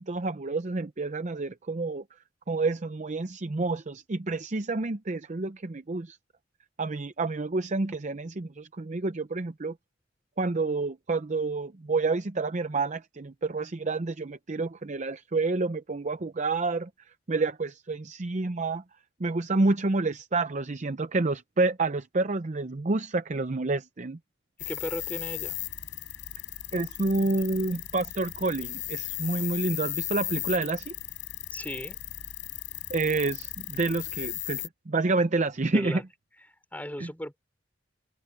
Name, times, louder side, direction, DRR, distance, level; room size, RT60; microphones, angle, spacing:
voice 1, 0.0-2.0 2.5-6.2 6.8-9.8 10.4-16.9 17.3-18.8 19.2-24.2 26.7-30.9 32.9-36.0 37.0-37.1, right 3 dB, 40° right, 0.6 m, -29 dB
sound 1, 24.6-34.7, left 16 dB, 75° left, 5.5 m, -36 dB
voice 2, 24.6-25.6 31.5-32.0 35.7-36.0 36.7-37.4, left 1 dB, 10° left, 4.2 m, -36 dB
head